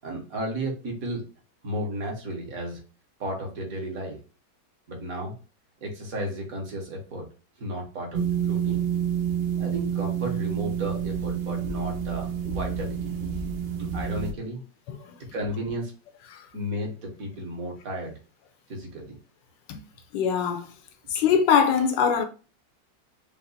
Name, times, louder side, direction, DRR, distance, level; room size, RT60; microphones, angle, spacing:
voice 1, 0.0-1.2 1.6-2.8 3.2-4.2 4.9-5.3 5.8-7.3 7.6-8.9 9.6-13.1 13.8-14.6 15.3-15.9 16.5-18.1 18.7-19.2, right 1 dB, 50° right, 1.7 m, -33 dB
sound 1, 8.1-14.3, right 8 dB, 80° right, 0.5 m, -28 dB
voice 2, 20.1-20.7 21.1-22.2, left 7 dB, 75° left, 1.4 m, -22 dB
5.4 x 2.1 x 3.9 m
omnidirectional pair, 2.0 m